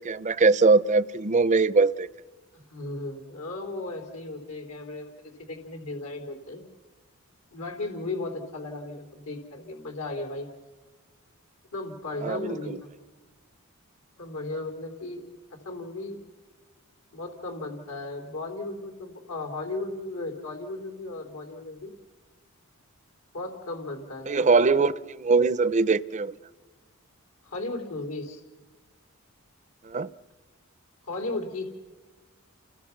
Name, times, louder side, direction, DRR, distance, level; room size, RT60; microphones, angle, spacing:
voice 1, 0.0-2.1 12.2-12.8 24.3-26.3 29.9-30.1, right 4 dB, 35° right, 0.6 m, -22 dB
voice 2, 2.7-6.6 7.5-10.5 11.7-12.9 14.2-15.2 15.6-16.2 17.1-21.9 23.3-24.9 27.4-28.4 31.0-31.6, left 2 dB, 80° left, 3.8 m, -35 dB
29.5 x 20.5 x 6.0 m
head